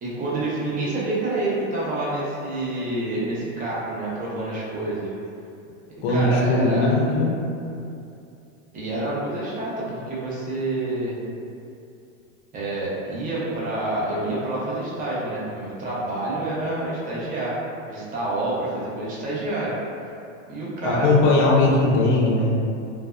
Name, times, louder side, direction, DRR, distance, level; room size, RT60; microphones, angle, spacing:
voice 1, 0.0-5.1 6.1-6.9 8.7-11.2 12.5-17.6 17.9-19.7 20.5-21.4, right 2 dB, 20° right, -7 dB, 0.6 m, -28 dB
voice 2, 6.0-7.3 20.8-22.6, left 2 dB, 60° left, -3 dB, 0.6 m, -19 dB
2.6 x 2.2 x 2.3 m, 2.6 s
supercardioid pair, 120°, 39 cm